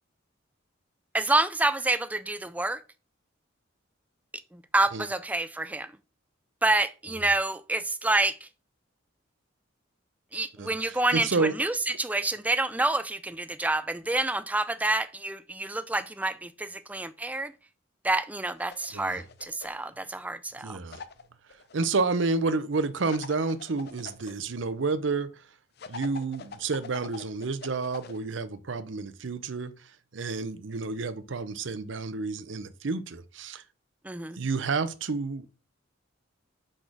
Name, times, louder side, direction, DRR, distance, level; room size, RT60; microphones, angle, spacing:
voice 1, 1.1-2.8 4.5-5.9 6.6-8.5 10.3-17.5 18.0-20.8 34.0-34.4, right 2 dB, 10° right, 0.3 m, -28 dB
voice 2, 10.6-11.5 18.9-19.2 20.6-21.0 21.7-25.3 25.9-29.7 30.1-33.6 34.4-35.5, right 4 dB, 65° right, 0.6 m, -30 dB
sound 1, 18.5-19.9 20.9-21.9 23.1-24.3 25.8-28.2, left 5 dB, 55° left, 0.5 m, -44 dB
5.0 x 4.2 x 6.0 m
head